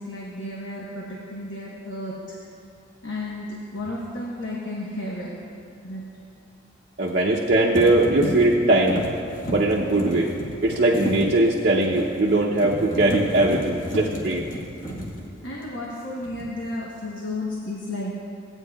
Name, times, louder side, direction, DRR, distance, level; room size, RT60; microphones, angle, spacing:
voice 1, 0.0-2.4 3.0-5.3 5.8-6.0 15.4-18.2, left 1 dB, 70° left, -4 dB, 1.1 m, -33 dB
sound 1, 3.8-3.9 7.1-7.4 7.7-15.9 16.2-16.7, equal, 40° left, 1.3 m, -32 dB
voice 2, 7.0-9.1 9.5-10.3 10.6-14.5, right 2 dB, 50° right, -3 dB, 0.6 m, -20 dB
16.0 x 9.0 x 2.3 m, 2.6 s
head